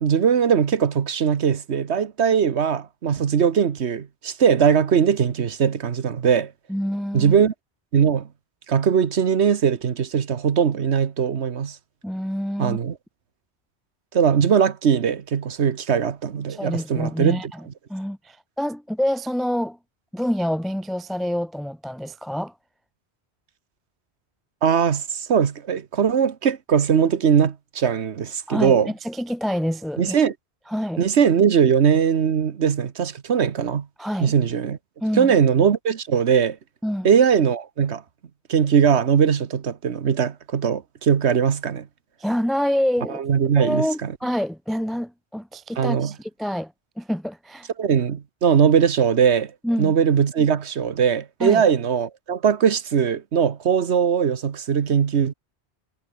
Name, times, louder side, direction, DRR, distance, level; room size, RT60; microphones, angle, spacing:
voice 1, 0.0-6.5 7.1-7.5 7.9-8.3 8.7-11.8 12.6-12.9 14.1-17.4 24.6-28.9 30.0-30.3 31.0-33.9 34.2-34.8 35.2-36.6 37.0-38.0 38.5-41.9 43.2-44.1 45.8-46.1 47.8-49.5 49.8-55.3, right 7 dB, 85° right, 1.4 m, -20 dB
voice 2, 6.7-7.3 12.0-12.8 16.5-17.6 17.9-19.8 20.1-22.5 28.5-30.2 30.7-31.0 34.0-34.3 35.0-35.3 36.8-37.1 42.2-43.2 43.6-47.7 49.6-49.9 51.4-51.6, equal, ahead, 0.6 m, -27 dB
omnidirectional pair, 1.1 m